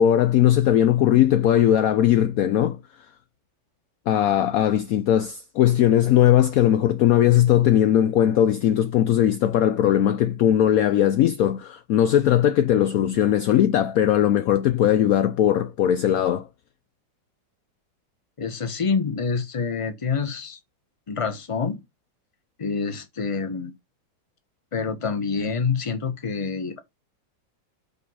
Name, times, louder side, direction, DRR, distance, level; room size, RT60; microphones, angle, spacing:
voice 1, 0.0-2.8 4.1-16.4, left 11 dB, 75° left, 0.8 m, -19 dB
voice 2, 18.4-20.6 21.1-21.8 22.6-23.7 24.7-26.8, left 5 dB, 25° left, 0.9 m, -27 dB
5.5 x 4.5 x 6.2 m
omnidirectional pair, 2.1 m